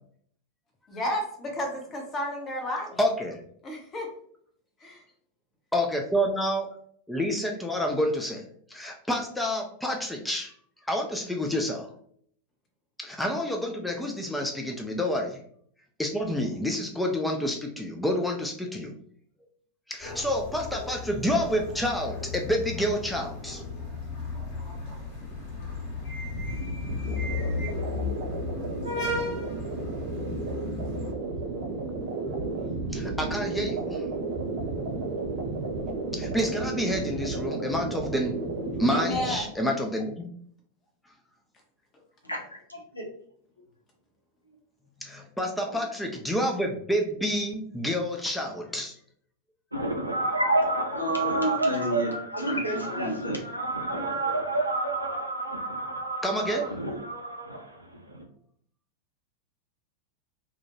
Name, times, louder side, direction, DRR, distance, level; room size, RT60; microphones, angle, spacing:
voice 1, 0.9-3.0 3.6-4.1 4.8-5.0 38.9-39.6, left 1 dB, 25° left, 2 dB, 0.7 m, -32 dB
voice 2, 3.0-3.4 5.7-6.7 7.1-8.5 8.7-10.5 10.9-11.9 13.0-15.4 16.0-18.9 19.9-23.6 32.9-34.1 36.1-38.4 38.8-40.3 45.0-49.0 56.2-56.8, equal, 5° left, 2 dB, 0.3 m, -28 dB
sound 1, 20.0-31.1, left 4 dB, 45° left, 1.1 m, -35 dB
sound 2, 26.2-39.4, right 3 dB, 45° right, 0.6 m, -33 dB
voice 3, 42.7-43.0 45.6-45.7 50.3-50.6 50.9-53.5 53.9-54.4, right 1 dB, 85° left, 0 dB, 0.5 m, -29 dB
sound 3, 49.7-58.2, right 2 dB, 85° right, 0.4 m, -30 dB
2.4 x 2.1 x 2.9 m, 0.63 s
figure-of-eight pair, 90°, 0 cm